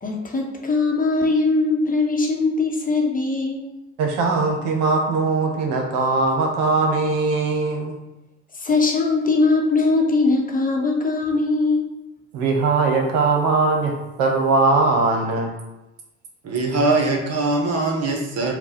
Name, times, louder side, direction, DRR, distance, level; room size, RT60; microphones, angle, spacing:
voice 1, 0.0-3.7 8.5-11.9, left 3 dB, 25° left, 1 dB, 0.9 m, -21 dB
voice 2, 4.0-8.0 12.3-13.9 14.2-15.5, right 3 dB, 70° right, 1 dB, 1.0 m, -20 dB
voice 3, 16.4-18.5, right 3 dB, 45° right, 1 dB, 1.1 m, -21 dB
4.5 x 2.3 x 4.1 m, 0.99 s
hypercardioid pair, 70°, 35 cm